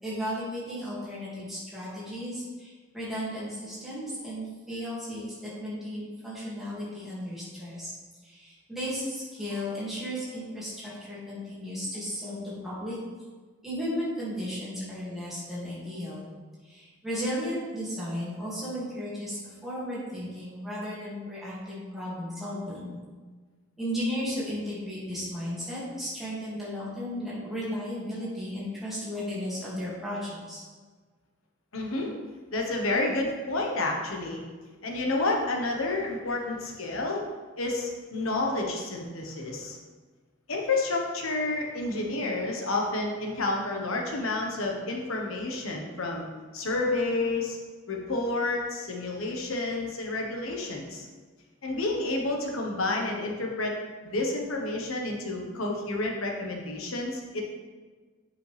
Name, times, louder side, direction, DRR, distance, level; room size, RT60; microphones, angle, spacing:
voice 1, 0.0-7.9 8.2-13.0 13.6-16.3 16.6-22.9 23.8-30.6, equal, ahead, -10 dB, 2.2 m, -35 dB
voice 2, 31.7-32.1 32.5-34.4 34.8-37.2 37.6-39.8 40.5-46.3 46.5-47.6 47.9-51.1 51.6-53.7 54.0-57.4, left 2 dB, 90° left, 0 dB, 1.2 m, -30 dB
8.1 x 5.5 x 3.4 m, 1.4 s
head